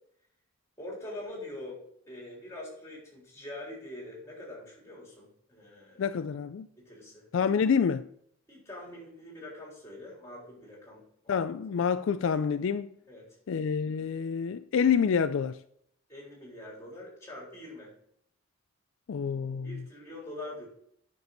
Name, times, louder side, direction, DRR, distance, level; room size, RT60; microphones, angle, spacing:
voice 1, 0.8-6.1 6.8-7.6 8.5-11.5 13.1-13.4 16.1-17.9 19.6-20.7, left 1 dB, 15° left, 3.7 m, -44 dB
voice 2, 6.0-6.7 7.3-8.1 11.3-12.9 13.5-15.6 19.1-19.8, left 6 dB, 65° left, 0.3 m, -27 dB
9.6 x 6.1 x 4.0 m
head